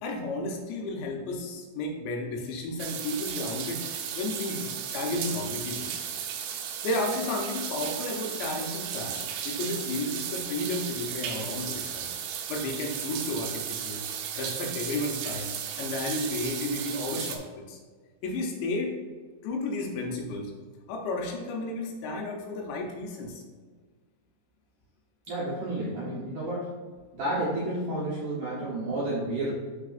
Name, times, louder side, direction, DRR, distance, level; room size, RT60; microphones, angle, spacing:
voice 1, 0.0-3.8 4.2-5.9 6.8-12.1 12.5-14.1 14.4-15.5 15.8-17.8 18.2-19.0 19.4-20.5 20.9-23.4, left 2 dB, 80° left, 0 dB, 2.9 m, -32 dB
sound 1, 2.8-17.4, right 8 dB, 85° right, 2.5 m, -35 dB
voice 2, 25.3-26.7 27.1-29.5, right 1 dB, 70° right, -8 dB, 2.0 m, -31 dB
12.0 x 4.1 x 2.5 m, 1.5 s
omnidirectional pair, 5.3 m